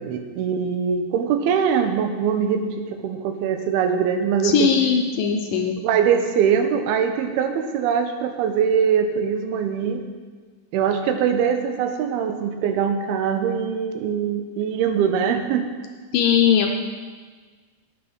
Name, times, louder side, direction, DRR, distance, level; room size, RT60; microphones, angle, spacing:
voice 1, 0.0-4.7 5.8-10.0 10.7-15.7, right 7 dB, 85° right, 7 dB, 2.8 m, -22 dB
voice 2, 4.4-5.8 16.1-16.7, left 7 dB, 75° left, 3 dB, 2.1 m, -19 dB
9.5 x 8.9 x 6.3 m, 1.5 s
omnidirectional pair, 4.4 m